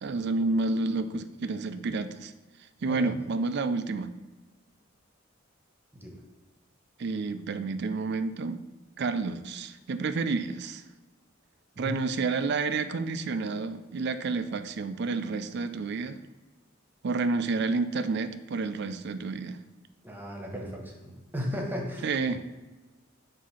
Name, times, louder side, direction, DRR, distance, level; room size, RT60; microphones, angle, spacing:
voice 1, 0.0-2.3 2.8-4.1 7.0-8.6 9.0-10.8 11.8-16.2 17.0-19.6 22.0-22.5, right 3 dB, 55° right, 11 dB, 0.4 m, -30 dB
voice 2, 20.0-22.1, equal, 10° right, 0 dB, 1.1 m, -35 dB
7.4 x 2.8 x 5.6 m, 1.2 s
head